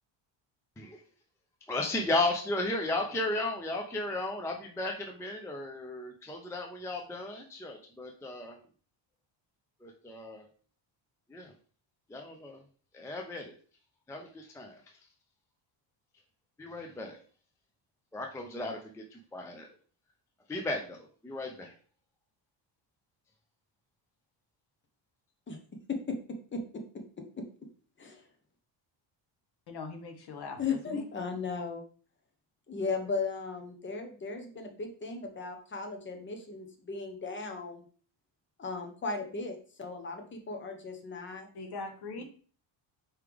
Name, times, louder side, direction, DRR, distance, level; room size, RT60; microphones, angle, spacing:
voice 1, 1.7-8.6 9.8-10.4 11.3-11.5 12.1-12.6 12.9-13.5 14.1-14.8 16.6-17.2 18.1-19.7 20.5-21.7, left 2 dB, 5° left, 2 dB, 0.4 m, -35 dB
voice 2, 26.5-26.8 27.4-27.5 28.0-28.2 30.6-31.8 32.7-37.8 38.6-41.5, left 4 dB, 25° left, 4 dB, 0.9 m, -36 dB
voice 3, 29.7-31.0 41.5-42.2, left 3 dB, 55° left, 6 dB, 1.0 m, -41 dB
4.7 x 3.4 x 3.4 m, 0.42 s
cardioid pair, 140°, 48 cm